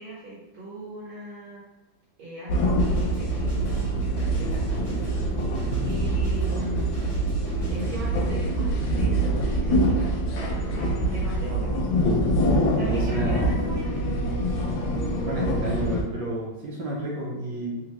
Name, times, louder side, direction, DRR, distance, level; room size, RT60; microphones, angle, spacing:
voice 1, 0.0-1.6 2.2-5.1 5.8-7.0 7.7-11.8 12.8-14.2, right 1 dB, 90° right, -6 dB, 1.6 m, -38 dB
sound 1, 2.5-16.0, right 1 dB, 80° left, 1.3 m, -25 dB
sound 2, 2.8-8.3, right 1 dB, 35° left, 0.4 m, -39 dB
sound 3, 10.4-15.8, left 1 dB, 55° left, 0.8 m, -44 dB
voice 2, 12.8-13.5 15.3-17.7, right 1 dB, 70° right, -4 dB, 1.1 m, -30 dB
3.6 x 2.0 x 2.9 m, 1.0 s
omnidirectional pair, 2.2 m